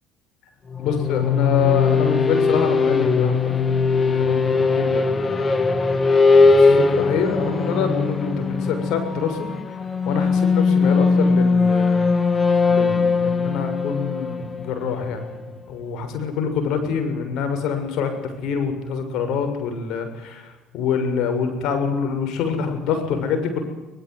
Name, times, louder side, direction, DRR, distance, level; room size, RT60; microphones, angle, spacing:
sound 1, 0.7-15.4, left 4 dB, 30° left, 2.4 m, -19 dB
voice 1, 0.8-3.5 3.9-5.8 6.5-9.5 10.1-12.1 12.7-15.4 15.7-23.6, left 6 dB, 70° left, 6 dB, 6.9 m, -26 dB
22.5 x 21.0 x 9.6 m, 1.0 s
hypercardioid pair, 70°, 0 cm